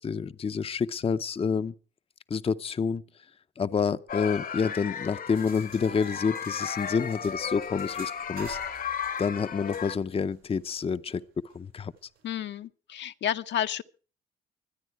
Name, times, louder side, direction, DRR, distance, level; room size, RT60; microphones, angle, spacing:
voice 1, 0.0-1.7 2.3-3.3 3.6-8.6 9.2-11.2 11.5-11.9, left 6 dB, 30° left, 0.6 m, -28 dB
sound 1, 4.1-10.0, left 7 dB, 45° left, 1.0 m, -35 dB
sound 2, 5.3-12.3, right 8 dB, 85° right, 5.6 m, -53 dB
voice 2, 12.2-13.8, left 10 dB, 65° left, 0.8 m, -31 dB
24.5 x 9.2 x 4.6 m
cardioid pair, 90°, 20 cm